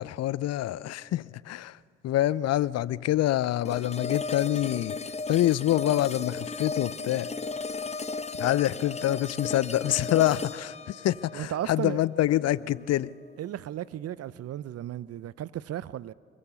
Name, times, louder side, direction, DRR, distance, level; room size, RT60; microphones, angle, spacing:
voice 1, 0.0-1.8 2.0-5.0 5.3-7.3 8.4-13.1, left 13 dB, 55° left, 0.6 m, -26 dB
sound 1, 3.6-12.7, left 4 dB, 20° left, 0.7 m, -35 dB
voice 2, 11.3-12.0 13.4-16.1, right 12 dB, 55° right, 0.6 m, -35 dB
22.5 x 19.5 x 6.9 m
hypercardioid pair, 45°, 30 cm